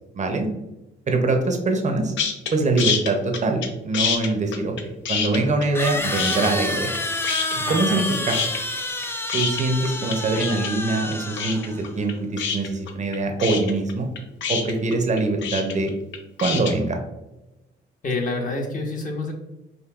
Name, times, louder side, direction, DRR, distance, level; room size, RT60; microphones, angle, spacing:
voice 1, 0.1-0.5 1.1-2.1 2.5-7.0 7.7-8.4 9.3-14.1 14.5-15.9 16.4-17.0, right 2 dB, 35° right, 4 dB, 0.6 m, -23 dB
sound 1, 2.2-2.5 2.8-3.7 3.9-5.9 6.2-7.0 7.2-8.0 8.3-16.7, left 6 dB, 70° left, 0.6 m, -26 dB
sound 2, 5.8-11.9, left 2 dB, 10° left, 0.3 m, -29 dB
voice 2, 7.5-8.1 18.0-19.3, left 2 dB, 40° left, 1 dB, 0.9 m, -28 dB
5.2 x 2.6 x 2.3 m, 1.0 s
cardioid pair, 90°, 20 cm